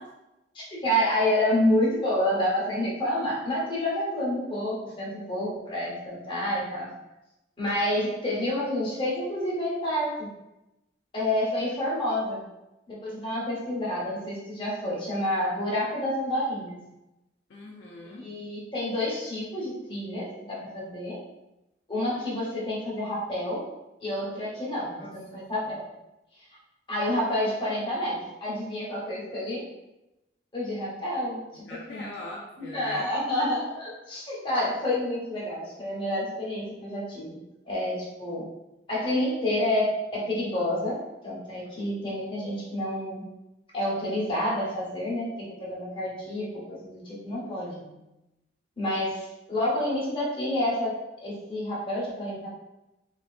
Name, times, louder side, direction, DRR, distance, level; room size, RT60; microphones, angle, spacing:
voice 1, 0.5-6.9 7.6-10.3 11.1-12.4 12.9-16.8 18.2-21.2 21.9-23.6 24.0-25.8 26.9-29.6 30.5-32.0 32.6-37.4 37.7-38.4 38.9-41.0 41.2-43.2 43.7-45.3 45.6-47.7 48.8-50.9 51.2-52.5, left 1 dB, 30° left, -6 dB, 1.1 m, -29 dB
voice 2, 17.5-18.3 25.0-25.8 31.6-33.1 47.3-48.0, left 2 dB, 70° left, -2 dB, 0.5 m, -43 dB
3.2 x 2.7 x 2.4 m, 0.95 s
head